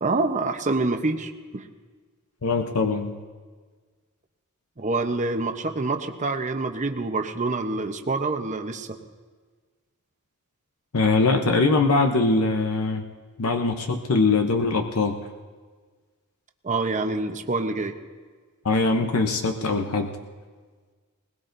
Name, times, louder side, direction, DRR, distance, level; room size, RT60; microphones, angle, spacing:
voice 1, 0.0-1.7 4.8-9.0 16.6-18.0, right 3 dB, 35° right, 6 dB, 0.8 m, -26 dB
voice 2, 2.4-3.2 10.9-13.0 13.4-15.2 18.6-20.2, left 3 dB, 85° left, 5 dB, 0.9 m, -22 dB
20.5 x 20.0 x 2.7 m, 1.5 s
head